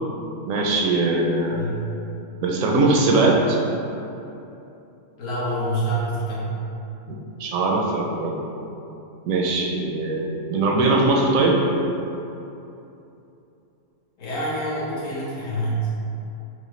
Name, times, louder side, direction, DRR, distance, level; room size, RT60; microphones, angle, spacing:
voice 1, 0.5-1.7 2.4-3.6 7.1-8.3 9.3-11.6, right 2 dB, 70° right, -1 dB, 0.9 m, -21 dB
voice 2, 1.5-1.8 5.2-6.6 14.2-15.9, right 1 dB, 60° left, -8 dB, 1.4 m, -26 dB
6.3 x 2.2 x 3.1 m, 2.8 s
omnidirectional pair, 1.5 m